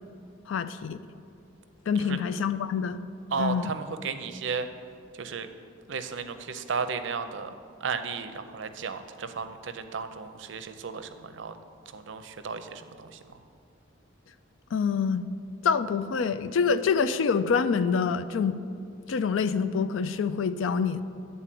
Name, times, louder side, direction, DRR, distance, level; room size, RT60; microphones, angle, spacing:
voice 1, 0.5-1.0 1.9-3.0 3.4-3.7 14.7-15.3 15.6-18.6 19.1-21.0, left 6 dB, 75° left, 13 dB, 0.4 m, -26 dB
voice 2, 3.3-4.7 5.2-5.5 5.9-7.5 7.8-11.6 11.9-13.4, right 5 dB, 65° right, 9 dB, 0.5 m, -34 dB
10.5 x 4.0 x 7.5 m, 2.4 s
head